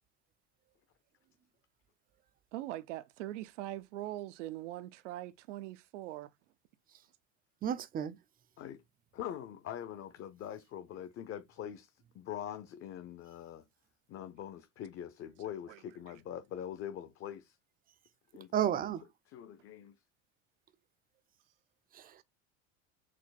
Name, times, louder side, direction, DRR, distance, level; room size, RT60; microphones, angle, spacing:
voice 1, 2.5-6.3 15.7-15.8, right 15 dB, 85° right, 0.6 m, -42 dB
voice 2, 7.6-8.2 18.5-19.0 21.9-22.2, right 9 dB, 25° right, 0.5 m, -32 dB
voice 3, 9.1-11.9 12.1-13.6 14.1-17.5 18.3-18.8 19.3-19.9, left 10 dB, 40° left, 0.7 m, -43 dB
4.6 x 2.2 x 4.0 m
supercardioid pair, 110°, 36 cm